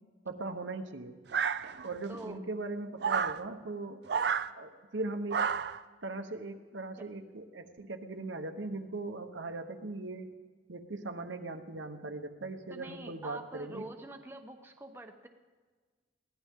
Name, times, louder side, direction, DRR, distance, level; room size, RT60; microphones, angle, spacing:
voice 1, 0.2-1.2 1.8-4.0 4.5-5.5 6.0-10.3 10.7-13.9, right 2 dB, 80° right, 5 dB, 1.1 m, -39 dB
sound 1, 1.3-2.0 3.0-3.4 4.1-4.5 5.3-5.8, right 6 dB, 60° right, 0.4 m, -30 dB
voice 2, 2.1-2.4 12.7-15.3, right 2 dB, 10° right, 4 dB, 0.9 m, -45 dB
22.0 x 16.0 x 3.7 m, 1.4 s
head